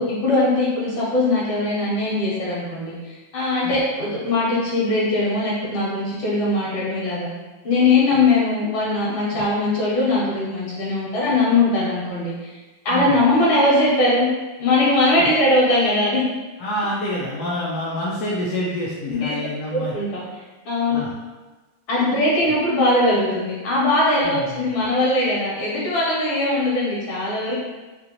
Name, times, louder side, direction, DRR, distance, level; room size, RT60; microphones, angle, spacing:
voice 1, 0.0-7.3 7.6-12.6 12.9-14.3 14.6-16.2 19.1-19.3 19.7-20.2 20.7-21.0 21.9-27.6, left 2 dB, 90° left, -6 dB, 1.9 m, -20 dB
voice 2, 12.9-13.2 15.1-15.3 16.6-20.0 20.9-21.1 24.2-24.7, left 1 dB, 70° left, -6 dB, 0.9 m, -28 dB
3.8 x 2.5 x 2.9 m, 1.2 s
omnidirectional pair, 2.2 m